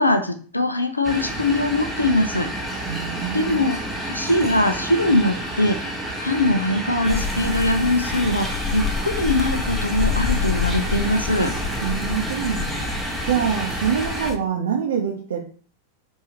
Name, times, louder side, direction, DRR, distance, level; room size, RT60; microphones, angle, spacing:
voice 1, 0.0-2.5 3.3-3.8 4.1-5.8 6.2-11.5, left 1 dB, 85° left, 7 dB, 0.5 m, -21 dB
sound 1, 1.0-14.3, right 1 dB, ahead, 0.9 m, -30 dB
voice 2, 2.9-3.6 11.8-12.9 13.2-15.4, right 7 dB, 60° right, 0 dB, 0.5 m, -25 dB
sound 2, 7.1-14.4, left 6 dB, 20° left, 0.5 m, -28 dB
4.8 x 2.7 x 2.9 m, 0.43 s
figure-of-eight pair, 90°, 0 cm